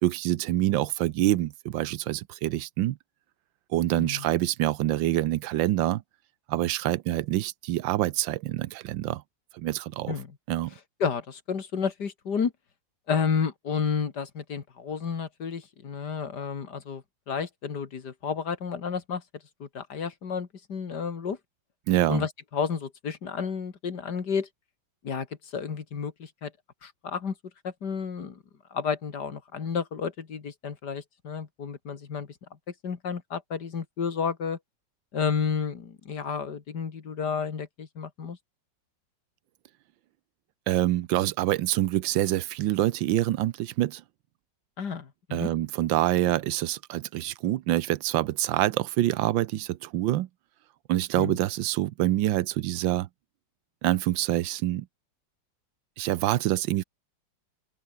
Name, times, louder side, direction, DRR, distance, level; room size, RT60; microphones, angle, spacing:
voice 1, 0.0-3.0 3.7-6.0 6.5-9.2 9.5-10.2 10.5-10.7 21.9-22.3 40.7-44.0 45.3-50.3 50.9-53.1 53.8-54.9 56.0-56.8, right 14 dB, 85° right, 1.5 m, -26 dB
voice 2, 11.0-12.5 13.1-19.2 19.6-21.4 22.1-24.5 25.0-25.3 25.5-26.5 26.8-27.3 27.6-28.4 28.7-32.3 32.8-34.6 35.1-38.4 44.8-45.5 51.2-51.4, left 6 dB, 60° left, 2.6 m, -31 dB
open air
omnidirectional pair, 2.0 m